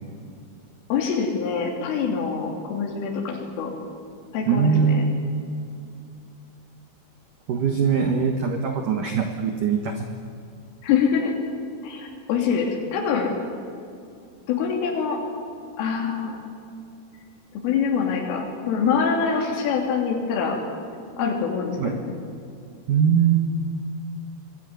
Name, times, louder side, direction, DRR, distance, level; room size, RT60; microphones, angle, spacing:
voice 1, 0.9-3.7 4.3-5.0 10.8-11.3 11.8-13.3 14.5-15.2 15.8-16.4 17.5-20.6 21.2-22.1, left 6 dB, 75° left, 0 dB, 5.4 m, -25 dB
voice 2, 4.5-5.1 7.5-10.1 21.8-22.0 22.9-23.5, right 7 dB, 60° right, 5 dB, 2.2 m, -21 dB
26.0 x 21.5 x 9.5 m, 2.5 s
omnidirectional pair, 5.9 m